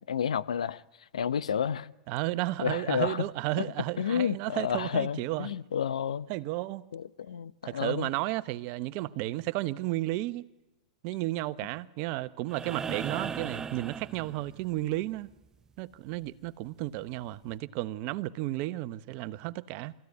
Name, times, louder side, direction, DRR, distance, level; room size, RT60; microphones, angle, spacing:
voice 1, 0.1-0.8 1.1-1.9 2.6-3.2 3.6-3.7 4.0-6.3 6.9-8.1, left 8 dB, 75° left, 0.8 m, -30 dB
voice 2, 2.1-5.5 6.3-6.9 7.6-10.5 11.0-15.3 15.8-19.9, right 17 dB, 45° right, 0.9 m, -33 dB
sound 1, 12.5-14.8 16.6-16.7, right 6 dB, 15° right, 0.7 m, -37 dB
24.5 x 15.0 x 9.5 m
hypercardioid pair, 105°, 3 cm